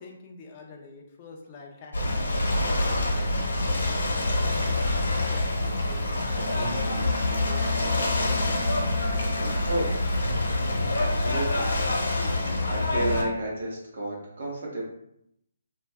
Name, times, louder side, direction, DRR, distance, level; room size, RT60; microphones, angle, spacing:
voice 1, 0.0-3.3 4.4-4.8 5.1-7.7, left 4 dB, 20° left, 0 dB, 0.3 m, -45 dB
Ocean / Boat Water vehicle, 1.9-13.2, left 2 dB, 85° left, 0.8 m, -26 dB
sound 1, 4.4-12.1, right 1 dB, 10° right, 0.9 m, -47 dB
Wind instrument woodwind instrument, 6.3-9.8, right 2 dB, 90° right, 0.6 m, -37 dB
voice 2, 9.7-10.0 10.9-11.7 12.7-14.8, right 2 dB, 45° right, -3 dB, 0.7 m, -31 dB
2.6 x 2.2 x 3.2 m, 0.76 s
hypercardioid pair, 180°, 0 cm